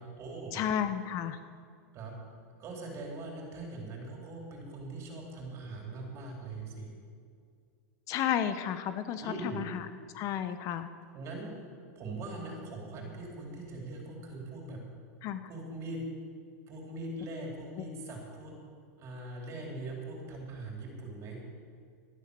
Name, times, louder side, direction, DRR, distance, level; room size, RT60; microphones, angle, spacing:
voice 1, 0.0-0.6 1.9-2.1 2.6-6.9 9.2-9.6 11.1-11.5 12.0-14.8 15.5-16.1 16.7-18.5 19.0-21.4, right 2 dB, 35° right, -1 dB, 3.9 m, -41 dB
voice 2, 0.5-1.4 8.1-9.9 10.1-10.9 15.2-15.4, left 9 dB, 40° left, 10 dB, 0.7 m, -32 dB
12.5 x 11.0 x 6.6 m, 2.1 s
supercardioid pair, 135°, 9 cm